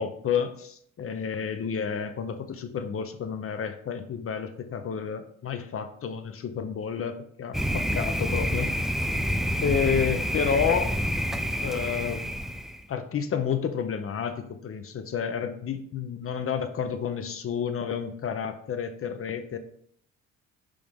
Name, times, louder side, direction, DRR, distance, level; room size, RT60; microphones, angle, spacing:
voice 1, 0.0-8.7 9.6-10.9 11.6-12.2 12.9-19.6, left 7 dB, 50° left, 9 dB, 0.6 m, -30 dB
Thunder, 7.5-12.8, equal, ahead, 0.3 m, -28 dB
8.8 x 3.5 x 3.5 m, 0.66 s
cardioid pair, 90°, 30 cm